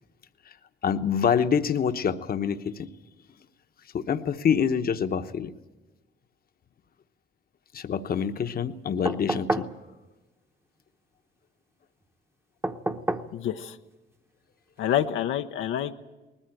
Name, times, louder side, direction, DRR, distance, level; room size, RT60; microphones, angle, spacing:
voice 1, 0.8-2.9 3.9-5.5 7.7-9.7, left 7 dB, 50° left, 8 dB, 1.0 m, -26 dB
sound 1, 9.1-9.8 12.6-13.3 15.0-15.1, right 1 dB, 10° right, 1.0 m, -29 dB
voice 2, 13.3-13.8 14.8-15.9, left 10 dB, 85° left, 5 dB, 0.8 m, -27 dB
20.0 x 14.5 x 9.1 m, 1.1 s
cardioid pair, 90°, 20 cm